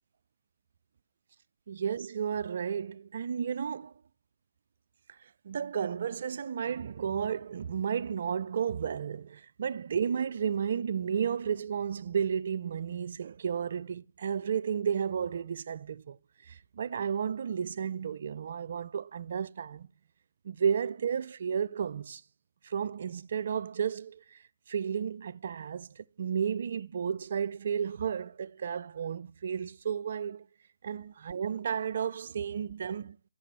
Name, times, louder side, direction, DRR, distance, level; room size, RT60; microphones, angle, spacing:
voice 1, 1.7-3.9 5.4-16.2 16.4-19.9 20.4-22.2 22.6-30.5 30.8-33.2, right 7 dB, 45° right, 0.3 m, -33 dB
6.6 x 4.5 x 5.4 m
figure-of-eight pair, 155°, 0 cm